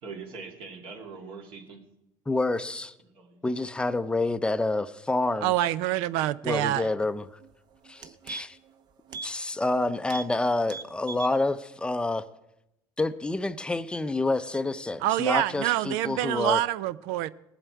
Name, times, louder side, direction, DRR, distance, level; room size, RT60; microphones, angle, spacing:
voice 1, 0.0-1.8 3.1-3.4, right 5 dB, 65° right, 2.9 m, -42 dB
voice 2, 2.3-2.9 3.4-5.5 6.4-7.2 7.9-8.6 9.2-12.2 13.0-16.6, left 2 dB, 10° left, 0.5 m, -28 dB
voice 3, 5.4-6.9 15.0-17.3, right 14 dB, 80° right, 0.5 m, -26 dB
sound 1, 7.4-7.5 7.8-8.7 9.1-9.3 9.6-9.8 10.0-10.3 10.6-11.4 11.7-11.8, right 5 dB, 45° right, 0.9 m, -40 dB
20.0 x 7.7 x 4.6 m
cardioid pair, 120°, 10 cm